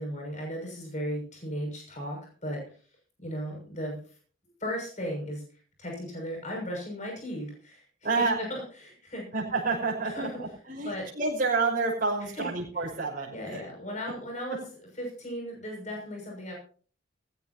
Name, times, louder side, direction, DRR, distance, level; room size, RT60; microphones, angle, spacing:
voice 1, 0.0-2.6 3.2-4.0 4.6-5.4 5.8-7.8 8.2-9.2 10.0-10.3 10.8-11.1 12.4-12.5 13.3-14.6 15.0-16.5, equal, 35° left, 0 dB, 6.4 m, -36 dB
voice 2, 8.0-8.4 9.3-13.6 14.1-14.2 14.5-14.6, right 3 dB, 45° right, -3 dB, 5.7 m, -29 dB
18.5 x 16.0 x 2.8 m, 0.41 s
head